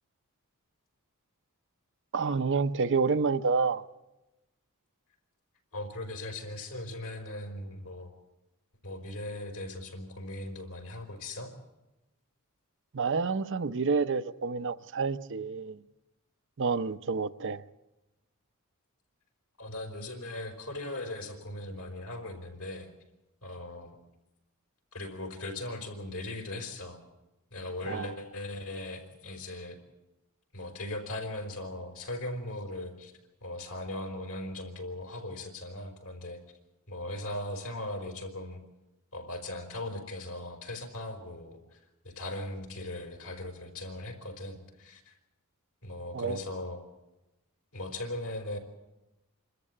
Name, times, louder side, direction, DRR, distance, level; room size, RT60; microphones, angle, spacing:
voice 1, 2.1-3.8 12.9-15.8 16.6-17.6 27.8-28.1 46.1-46.4, right 4 dB, 55° right, 0.7 m, -29 dB
voice 2, 5.7-8.1 8.8-11.5 19.6-22.9 23.4-24.0 24.9-27.0 27.5-29.8 30.5-33.1 33.4-36.4 36.9-38.6 39.1-41.8 42.0-45.1 45.8-46.8 47.7-48.6, left 1 dB, 75° left, 4.7 m, -39 dB
27.0 x 13.5 x 8.7 m
head